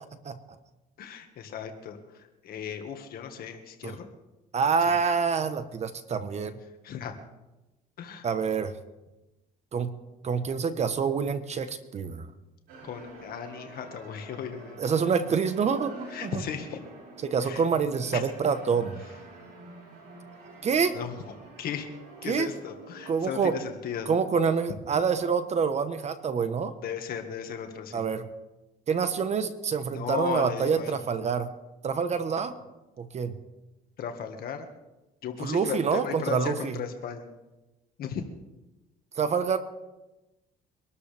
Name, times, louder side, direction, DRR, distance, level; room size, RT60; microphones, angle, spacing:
voice 1, 1.0-2.0 2.4-4.1 4.9-5.0 6.8-7.2 8.0-8.3 12.8-14.8 16.1-16.8 17.4-17.6 18.1-18.2 20.9-21.2 21.6-21.9 22.2-24.1 26.8-28.0 29.9-31.0 34.0-34.7 35.2-37.3 38.0-38.2, left 8 dB, 65° left, 5 dB, 1.7 m, -36 dB
voice 2, 4.5-6.5 8.2-8.7 9.7-9.9 10.2-12.3 14.8-15.9 16.2-16.4 17.2-19.0 20.6-21.0 22.3-22.5 23.1-23.6 24.1-26.7 27.9-28.3 28.9-31.5 31.8-32.5 33.0-33.4 35.4-36.8 39.2-39.6, right 6 dB, 40° right, 10 dB, 1.1 m, -26 dB
sound 1, 12.7-23.1, right 2 dB, 90° right, 5.5 m, -48 dB
24.5 x 12.5 x 3.4 m, 1.0 s
cardioid pair, 110°, 17 cm